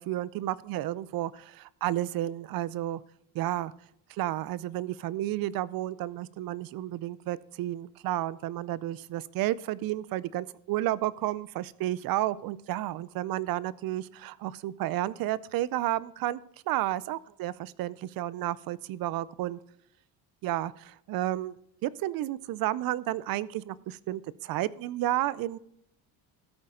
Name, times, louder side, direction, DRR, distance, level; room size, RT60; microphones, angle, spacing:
voice 1, 0.0-3.0 3.3-3.7 4.1-16.4 16.7-19.6 20.4-21.6 21.8-25.6, right 14 dB, 60° right, 20 dB, 0.5 m, -31 dB
13.0 x 8.3 x 3.8 m, 0.75 s
cardioid pair, 135°, 40 cm